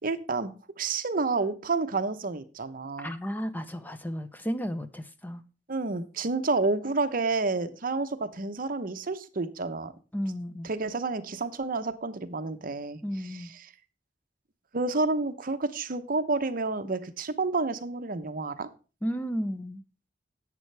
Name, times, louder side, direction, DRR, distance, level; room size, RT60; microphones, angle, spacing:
voice 1, 0.0-3.1 5.7-9.9 10.6-13.0 14.7-18.7, right 3 dB, 50° right, 0.8 m, -29 dB
voice 2, 3.0-5.4 10.1-10.7 13.0-13.5 19.0-19.8, equal, 10° left, 0.7 m, -33 dB
11.0 x 8.4 x 3.3 m
head